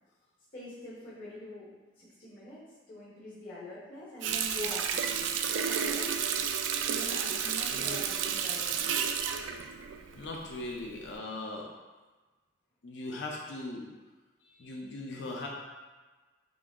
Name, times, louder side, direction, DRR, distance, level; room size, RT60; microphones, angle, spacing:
voice 1, 0.5-1.7 2.0-6.1 6.8-9.0, left 1 dB, 45° left, -11 dB, 1.1 m, -44 dB
Water tap faucet, 4.2-10.6 11.0-11.2, right 7 dB, 85° right, 0.3 m, -31 dB
voice 2, 7.7-8.0 10.1-11.7 12.8-13.9 14.6-15.5, left 2 dB, 70° left, -1 dB, 0.5 m, -39 dB
6.0 x 2.0 x 3.6 m, 1.3 s
head